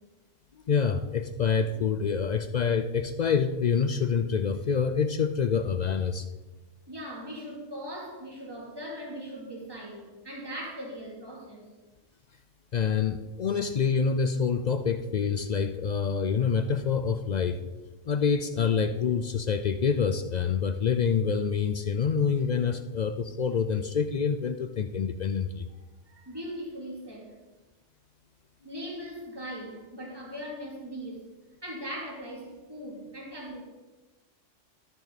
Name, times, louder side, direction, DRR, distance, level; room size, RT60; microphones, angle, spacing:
voice 1, 0.7-6.3 12.7-17.6 18.1-25.7, left 6 dB, 65° left, 9 dB, 0.4 m, -26 dB
voice 2, 6.9-11.7 26.1-27.3 28.6-31.3 31.6-33.6, equal, 20° right, -4 dB, 2.8 m, -39 dB
13.5 x 6.7 x 4.1 m, 1.1 s
omnidirectional pair, 1.3 m